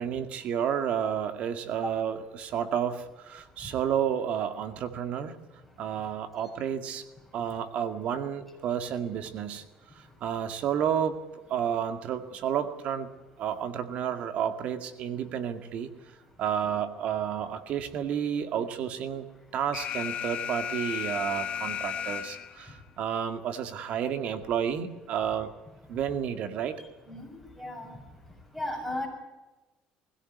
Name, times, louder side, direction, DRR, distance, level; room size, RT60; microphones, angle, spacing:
voice 1, 0.0-5.4 5.8-7.1 7.3-9.6 10.0-11.2 11.5-13.1 13.4-15.9 16.4-19.3 19.5-25.5 25.9-26.8, right 8 dB, 55° right, 9 dB, 2.1 m, -31 dB
Alarm, 19.7-22.7, left 9 dB, 50° left, 1.3 m, -34 dB
voice 2, 27.1-27.9 28.5-29.1, left 1 dB, ahead, 2 dB, 7.2 m, -36 dB
21.0 x 16.5 x 9.4 m, 1.2 s
cardioid pair, 130°, 3 cm